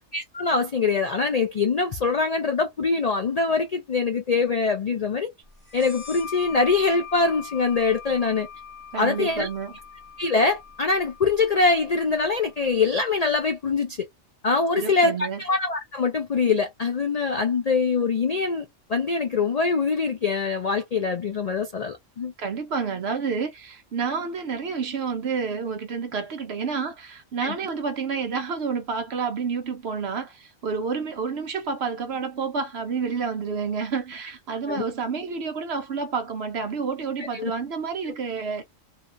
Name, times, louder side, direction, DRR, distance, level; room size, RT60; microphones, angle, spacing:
voice 1, 0.1-5.3 5.7-8.5 9.0-9.5 10.2-14.0 14.4-22.3 27.4-27.6 34.7-34.8 37.3-37.5, left 4 dB, 65° left, 0.4 m, -23 dB
sound 1, 5.7-13.0, left 7 dB, 15° right, 1.2 m, -42 dB
voice 2, 8.9-9.7 14.7-15.4 22.4-38.6, right 5 dB, 60° right, 0.8 m, -29 dB
2.8 x 2.3 x 2.4 m
omnidirectional pair, 1.4 m